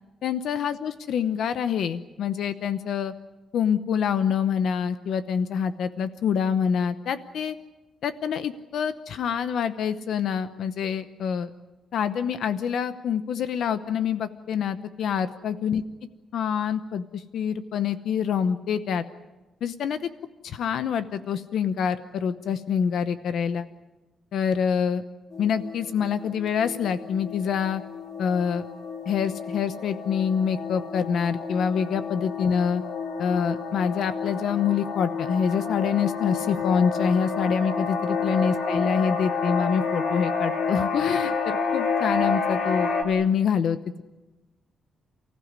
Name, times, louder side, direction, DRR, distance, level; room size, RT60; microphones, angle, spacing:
voice 1, 0.2-3.1 3.5-7.6 8.0-11.5 11.9-15.8 16.3-19.0 19.6-20.1 20.4-23.7 24.3-25.0 25.4-27.8 28.2-28.7 29.1-32.8 33.2-43.8, left 7 dB, 65° left, 12 dB, 0.8 m, -26 dB
sound 1, 25.3-43.0, left 4 dB, 45° left, 2.2 m, -29 dB
29.5 x 15.5 x 9.6 m, 1.1 s
wide cardioid pair, 175°, 0 cm